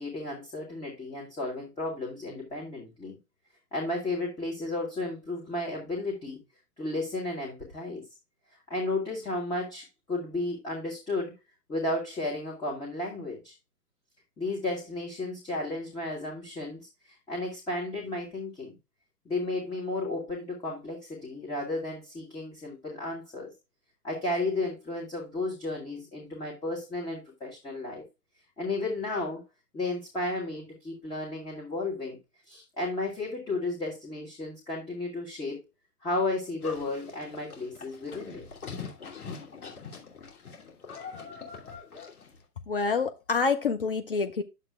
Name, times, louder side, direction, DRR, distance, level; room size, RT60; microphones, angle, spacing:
voice 1, 0.0-3.2 3.7-6.4 6.8-8.0 8.7-11.3 11.7-13.5 14.4-18.8 19.2-23.5 24.0-28.0 28.6-29.4 29.7-32.2 32.4-35.6 36.0-38.4, left 2 dB, 10° left, 1.5 m, -33 dB
Livestock farm animals working animals, 36.6-42.4, left 5 dB, 65° left, 3.0 m, -43 dB
voice 2, 42.7-44.4, left 4 dB, 35° left, 0.6 m, -27 dB
10.0 x 7.3 x 2.4 m
figure-of-eight pair, 125°, 47 cm